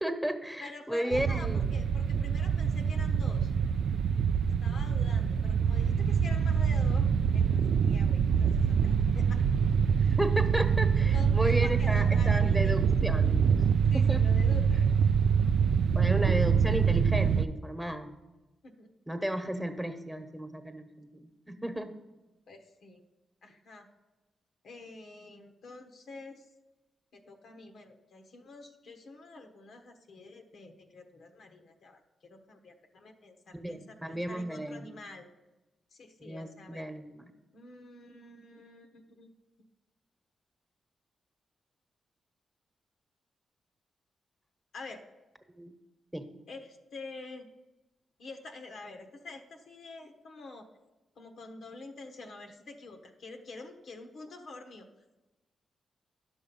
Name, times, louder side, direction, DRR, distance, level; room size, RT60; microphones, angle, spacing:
voice 1, 0.0-1.8 10.0-13.4 13.9-14.3 15.9-18.2 19.1-21.9 33.5-34.9 36.2-37.2 45.5-45.7 46.1-46.3, right 1 dB, 5° right, 8 dB, 1.2 m, -34 dB
voice 2, 0.6-3.5 4.6-9.4 11.1-12.8 13.9-14.9 18.6-18.9 22.5-23.0 23.4-23.9 24.6-26.4 27.1-32.0 32.3-35.3 35.9-36.9 37.5-39.3 44.7-45.0 46.5-47.5 48.2-50.7 51.2-54.9, left 3 dB, 70° left, 5 dB, 1.0 m, -47 dB
sound 1, 1.1-17.4, right 7 dB, 70° right, 0.3 m, -25 dB
10.5 x 6.2 x 5.4 m, 1.1 s
hypercardioid pair, 40°, 0 cm